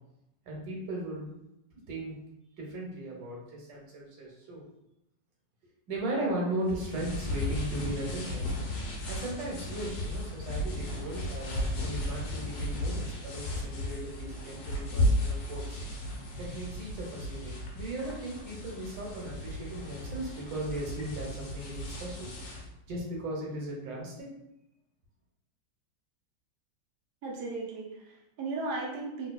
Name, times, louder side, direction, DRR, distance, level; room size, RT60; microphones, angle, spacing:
voice 1, 0.4-1.4 1.9-2.2 2.6-4.6 5.9-8.5 9.1-15.8 16.4-22.3 22.9-24.3, right 1 dB, 85° right, -2 dB, 1.6 m, -37 dB
sound 1, 6.7-22.7, left 1 dB, 70° left, 1.3 m, -34 dB
voice 2, 27.2-29.3, right 3 dB, 70° right, -2 dB, 1.1 m, -36 dB
3.5 x 2.7 x 2.3 m, 0.84 s
omnidirectional pair, 2.0 m